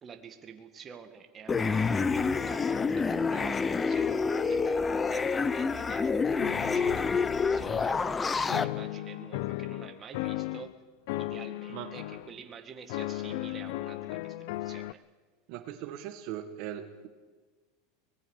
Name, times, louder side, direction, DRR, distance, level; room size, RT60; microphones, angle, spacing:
voice 1, 0.0-10.7 11.2-15.0, right 6 dB, 25° right, 6 dB, 1.9 m, -48 dB
sound 1, 1.5-8.7, left 5 dB, 15° left, 0.7 m, -28 dB
sound 2, 6.4-8.2 8.5-10.7 11.1-12.3 12.9-14.9, left 17 dB, 65° left, 0.5 m, -36 dB
voice 2, 15.5-17.1, right 11 dB, 50° right, 8 dB, 1.7 m, -39 dB
24.0 x 20.0 x 6.5 m, 1.4 s
supercardioid pair, 150°, 0 cm